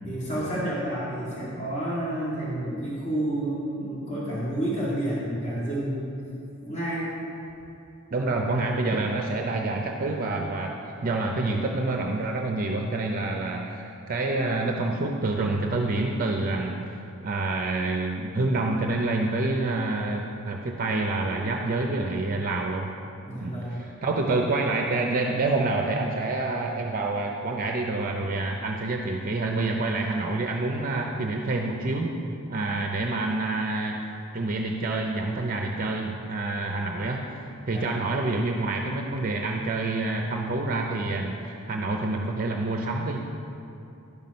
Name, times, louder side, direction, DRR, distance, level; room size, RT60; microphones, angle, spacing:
voice 1, 0.0-6.0 6.6-7.1 23.2-23.8 37.7-37.9, right 1 dB, 35° left, -8 dB, 1.9 m, -30 dB
voice 2, 8.1-10.7 11.0-22.9 23.4-32.2 32.5-34.0 34.3-43.2, right 2 dB, 40° right, 2 dB, 0.5 m, -27 dB
11.0 x 5.9 x 5.3 m, 2.8 s
head